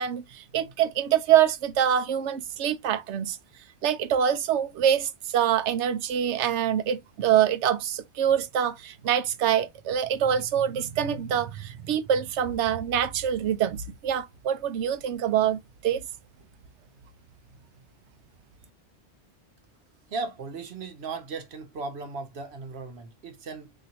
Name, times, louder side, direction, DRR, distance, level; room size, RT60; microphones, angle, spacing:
voice 1, 0.0-3.4 3.8-16.0, right 9 dB, 85° right, 0.9 m, -25 dB
voice 2, 20.1-23.7, right 4 dB, 70° right, 1.1 m, -36 dB
4.0 x 2.8 x 2.9 m
omnidirectional pair, 1.1 m